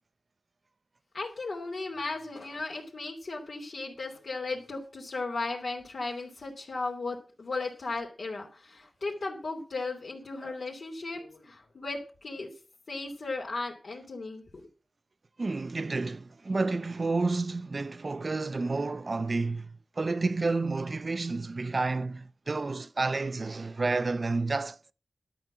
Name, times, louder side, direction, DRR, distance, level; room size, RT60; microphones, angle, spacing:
voice 1, 1.1-12.5 12.9-14.7, left 3 dB, 70° left, 3.0 m, -36 dB
voice 2, 15.4-24.9, right 3 dB, 45° right, 0.6 m, -30 dB
12.5 x 5.9 x 8.7 m
wide cardioid pair, 100°, 0 cm